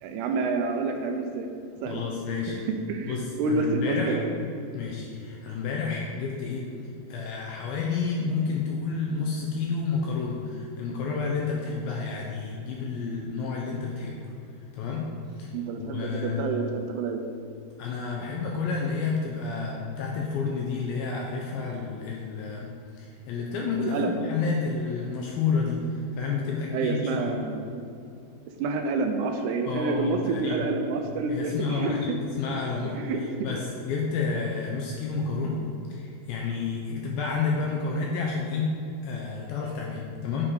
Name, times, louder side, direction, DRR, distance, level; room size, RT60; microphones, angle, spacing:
voice 1, 0.0-1.5 1.8-2.0 2.5-4.3 15.5-17.2 23.8-24.2 26.7-27.8 28.6-32.0 32.8-33.4, right 4 dB, 80° right, 4 dB, 2.4 m, -28 dB
voice 2, 1.9-2.6 3.1-4.2 4.7-6.7 7.1-14.2 14.7-15.0 15.4-15.5 15.8-16.4 17.8-27.4 29.7-30.6 31.3-33.0 33.4-35.6 35.9-38.7 39.0-40.5, left 4 dB, 80° left, -2 dB, 2.1 m, -30 dB
7.2 x 5.0 x 4.8 m, 2.6 s
omnidirectional pair, 5.0 m